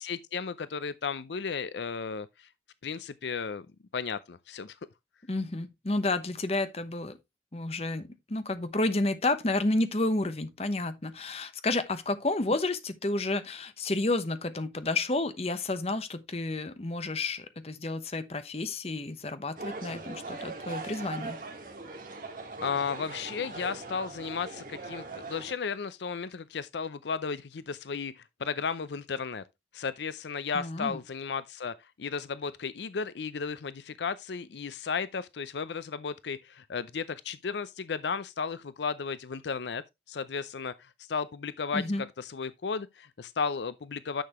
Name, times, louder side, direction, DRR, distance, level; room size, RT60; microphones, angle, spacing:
voice 1, 0.0-2.5 2.8-3.7 3.9-4.8 22.6-29.4 29.7-44.2, left 5 dB, 75° left, 0.5 m, -34 dB
voice 2, 5.3-7.2 7.5-21.4 30.5-31.0 41.7-42.0, left 2 dB, 35° left, 0.9 m, -30 dB
sound 1, 19.6-25.5, right 3 dB, 50° right, 2.0 m, -40 dB
10.0 x 6.8 x 3.0 m
head